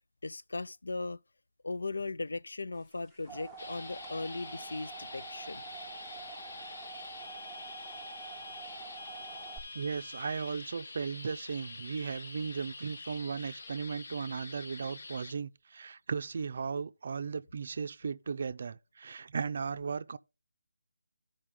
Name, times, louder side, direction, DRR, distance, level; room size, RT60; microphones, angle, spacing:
voice 1, 0.2-1.2 1.6-5.9, left 3 dB, 85° left, 0.4 m, -38 dB
sound 1, 2.9-9.6, right 5 dB, 5° left, 0.9 m, -47 dB
sound 2, 3.6-15.3, left 3 dB, 55° left, 1.1 m, -46 dB
voice 2, 9.7-20.2, right 5 dB, 45° right, 0.5 m, -36 dB
13.5 x 5.1 x 3.7 m
hypercardioid pair, 170°, 0 cm